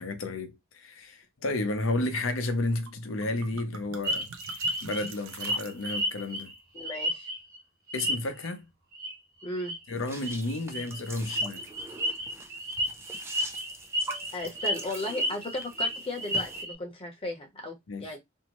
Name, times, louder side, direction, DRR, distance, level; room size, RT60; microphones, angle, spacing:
voice 1, 0.0-4.3 4.8-6.5 7.9-8.7 9.9-11.6 17.9-18.1, left 2 dB, 70° left, 0.6 m, -32 dB
sound 1, 2.9-3.0 3.2-6.2, right 6 dB, 80° right, 0.5 m, -46 dB
sound 2, 4.0-7.6 7.9-8.5 8.9-9.1 9.4-9.8 10.2-16.7, equal, 50° right, 0.9 m, -32 dB
voice 2, 6.7-7.3 9.4-9.7 14.3-18.2, left 2 dB, 25° left, 0.8 m, -35 dB
sound 3, 10.0-16.6, right 2 dB, 15° right, 0.3 m, -44 dB
2.6 x 2.1 x 2.9 m
head